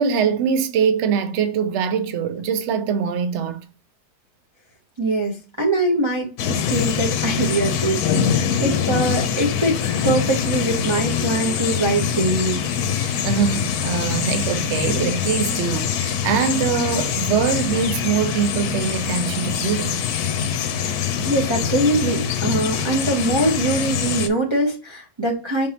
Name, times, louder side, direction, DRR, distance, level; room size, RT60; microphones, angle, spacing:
voice 1, 0.0-3.6 8.1-8.4 12.9-20.0 20.8-20.9, right 7 dB, 60° right, 0.8 m, -23 dB
voice 2, 5.0-8.0 8.6-9.8 10.0-12.6 21.2-25.7, right 2 dB, 30° right, 0.5 m, -22 dB
sound 1, 6.4-24.3, left 8 dB, 75° left, 1.1 m, -24 dB
5.2 x 3.6 x 2.8 m
omnidirectional pair, 1.7 m